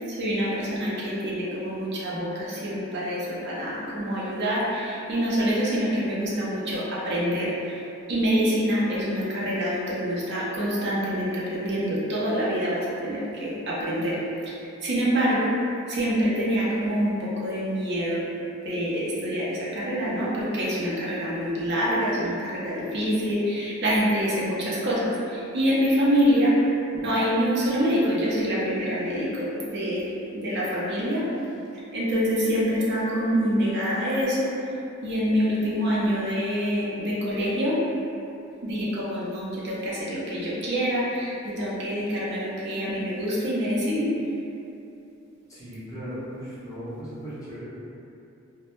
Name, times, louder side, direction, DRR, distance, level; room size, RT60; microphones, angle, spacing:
voice 1, 0.1-7.8 8.1-14.2 14.8-15.5 15.9-18.2 18.6-26.5 26.9-30.0 30.3-31.2 31.9-34.5 35.0-37.8 38.6-44.1, equal, 55° right, -7 dB, 0.5 m, -26 dB
voice 2, 45.5-47.6, equal, 15° left, -12 dB, 0.7 m, -37 dB
2.1 x 2.0 x 2.9 m, 2.7 s
head